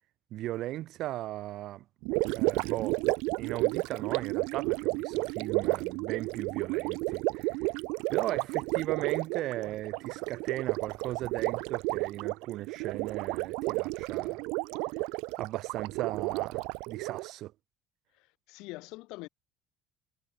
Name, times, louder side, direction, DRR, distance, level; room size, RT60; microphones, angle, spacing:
voice 1, 0.3-1.8 2.3-3.0 3.4-7.7 8.1-14.5 15.4-17.5, right 15 dB, 65° right, 2.6 m, -37 dB
Gurgling, 2.0-17.3, right 27 dB, 90° right, 0.4 m, -32 dB
voice 2, 18.1-19.3, left 23 dB, 80° left, 2.4 m, -44 dB
cardioid pair, 130°, 0 cm